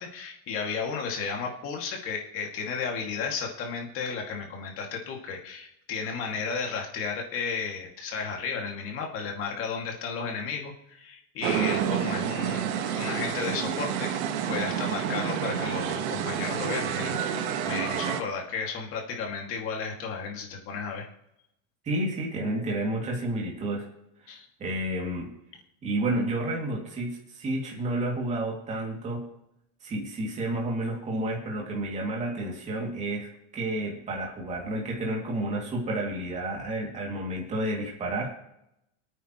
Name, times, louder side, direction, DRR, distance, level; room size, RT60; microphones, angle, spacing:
voice 1, 0.0-14.2 14.5-21.1 24.3-24.5, left 5 dB, 30° left, 1 dB, 2.3 m, -33 dB
sound 1, 11.4-18.2, right 8 dB, 85° right, 1.7 m, -29 dB
voice 2, 21.8-23.8 24.2-25.3 25.8-29.3 29.8-38.3, right 1 dB, 15° right, -2 dB, 2.5 m, -31 dB
26.5 x 9.2 x 3.1 m, 0.82 s
supercardioid pair, 175°, 41 cm